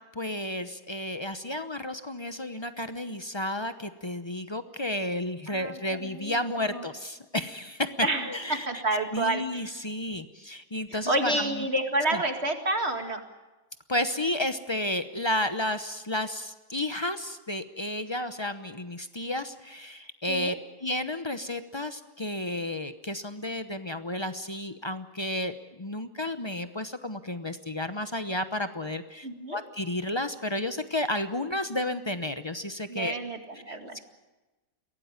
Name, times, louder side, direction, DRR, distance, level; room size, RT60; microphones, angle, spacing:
voice 1, 0.1-8.8 9.1-11.6 12.1-12.2 13.9-20.5 20.8-33.2 33.7-34.0, left 1 dB, 30° left, 10 dB, 0.5 m, -32 dB
voice 2, 5.5-6.8 8.0-9.7 10.9-13.2 20.3-20.6 29.2-29.6 32.9-34.0, right 2 dB, 35° right, 5 dB, 2.2 m, -29 dB
23.0 x 17.5 x 9.5 m, 1.1 s
omnidirectional pair, 2.0 m